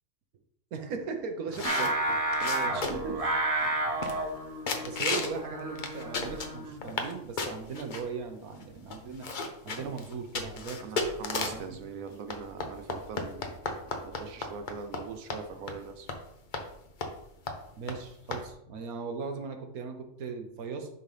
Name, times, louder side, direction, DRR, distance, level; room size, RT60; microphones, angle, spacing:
voice 1, 0.7-2.0 2.7-3.1 4.8-9.3 9.6-10.9 11.4-11.8 17.8-20.9, right 5 dB, 90° right, 5 dB, 1.4 m, -38 dB
sound 1, 1.5-3.2 3.6-3.7 4.0-4.4 4.7-5.4 5.8-7.1 7.4-8.0 8.6-8.7 8.9-11.7 12.3-15.0 15.3-15.4 15.7-15.8 16.1-16.2 16.5-16.7 17.0-17.2 17.5-17.6 17.9-18.0 18.3-18.4, left 3 dB, 40° left, 0.8 m, -34 dB
Singing, 1.6-6.9, right 1 dB, 25° right, 1.2 m, -31 dB
voice 2, 2.4-3.3 3.6-4.0 10.8-13.6 13.8-16.1, right 5 dB, 70° right, 7 dB, 1.2 m, -42 dB
10.0 x 4.0 x 3.4 m, 0.77 s
omnidirectional pair, 1.5 m